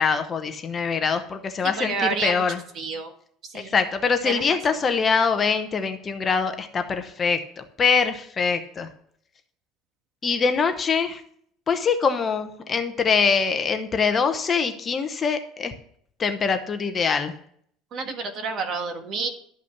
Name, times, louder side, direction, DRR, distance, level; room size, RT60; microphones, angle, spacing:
voice 1, 0.0-1.9 2.2-2.6 3.5-8.9 10.2-11.2 11.7-15.7 16.2-17.3, left 5 dB, 25° left, 8 dB, 0.9 m, -23 dB
voice 2, 1.8-2.4 2.7-3.1 3.4-3.7 4.2-4.8 17.9-19.3, right 4 dB, 40° right, 5 dB, 1.7 m, -29 dB
12.0 x 5.8 x 5.9 m, 0.63 s
cardioid pair, 155°, 0 cm